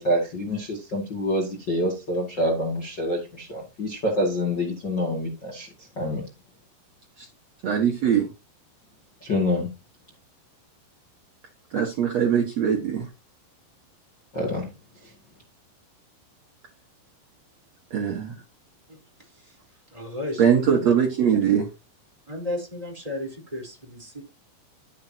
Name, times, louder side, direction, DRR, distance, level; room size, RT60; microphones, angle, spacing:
voice 1, 0.0-6.2 9.2-9.7 14.3-14.7 15.0-15.1, left 1 dB, 35° left, 1.9 m, -27 dB
voice 2, 7.6-8.3 11.7-13.1 17.9-18.3 20.4-21.7, right 8 dB, 85° right, 1.4 m, -21 dB
voice 3, 19.9-20.9 22.3-24.2, left 1 dB, 10° right, 3.3 m, -34 dB
13.5 x 7.5 x 2.9 m
omnidirectional pair, 5.5 m